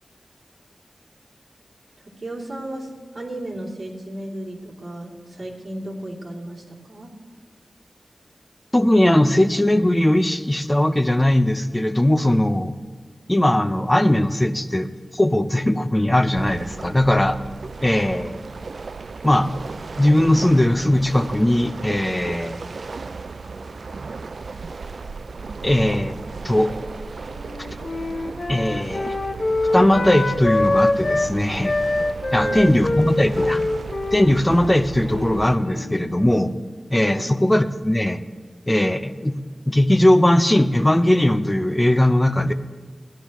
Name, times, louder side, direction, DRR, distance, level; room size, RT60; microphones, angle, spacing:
voice 1, 2.2-7.1 32.3-32.7 37.0-37.3, right 1 dB, 55° right, -5 dB, 3.0 m, -34 dB
voice 2, 8.7-12.7 13.3-17.4 17.8-18.4 19.2-19.5 20.0-22.6 25.6-26.2 26.4-26.7 28.5-29.2 29.7-31.8 32.3-33.6 34.1-36.5 36.9-38.2 38.7-39.4 39.7-42.5, left 1 dB, 15° left, 9 dB, 0.6 m, -19 dB
sound 1, 16.3-35.6, right 4 dB, 75° right, 0.3 m, -35 dB
Wind instrument woodwind instrument, 27.3-31.3 31.6-36.1, left 2 dB, 60° left, 0.8 m, -24 dB
17.0 x 11.5 x 3.1 m, 1.4 s
wide cardioid pair, 75°, 0 cm